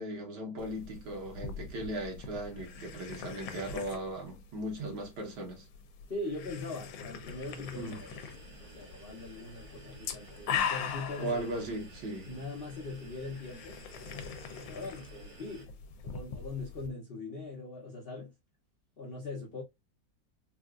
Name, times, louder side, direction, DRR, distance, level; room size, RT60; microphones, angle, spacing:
voice 1, 0.0-5.7 7.8-8.0 11.2-12.3, right 1 dB, 65° right, 1.7 m, -37 dB
sound 1, 0.6-16.9, left 7 dB, 85° left, 1.4 m, -42 dB
voice 2, 6.1-11.4 12.3-13.8 14.6-18.3 19.0-19.6, left 3 dB, 55° left, 0.6 m, -41 dB
sound 2, 7.2-15.6, right 2 dB, 45° right, 1.2 m, -53 dB
3.9 x 2.4 x 2.3 m
omnidirectional pair, 2.0 m